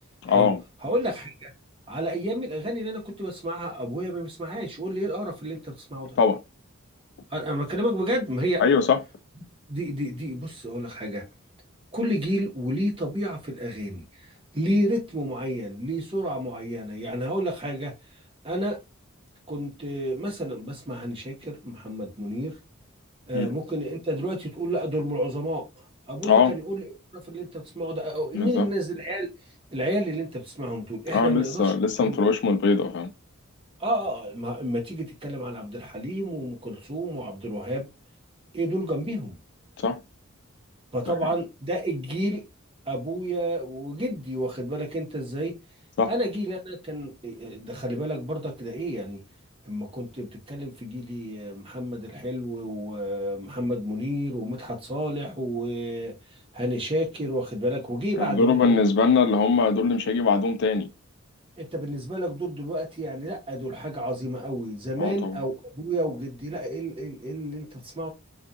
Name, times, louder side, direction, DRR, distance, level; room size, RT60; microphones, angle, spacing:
voice 1, 0.2-0.6 6.2-6.4 8.6-9.0 23.3-23.5 26.2-26.5 28.3-28.7 31.1-33.1 39.8-40.0 46.0-46.1 58.2-60.9 65.0-65.4, left 4 dB, 55° left, 0.4 m, -21 dB
voice 2, 0.8-1.5 1.9-6.2 7.3-8.6 9.7-11.2 11.9-14.0 14.5-17.9 18.4-18.8 19.5-22.6 23.3-25.7 26.1-29.3 29.7-31.7 32.0-32.2 33.8-37.9 38.5-39.4 40.9-42.4 42.9-45.6 46.1-49.2 49.7-56.1 56.5-58.8 61.6-68.1, equal, 25° right, 1.0 m, -30 dB
2.5 x 2.4 x 2.6 m
head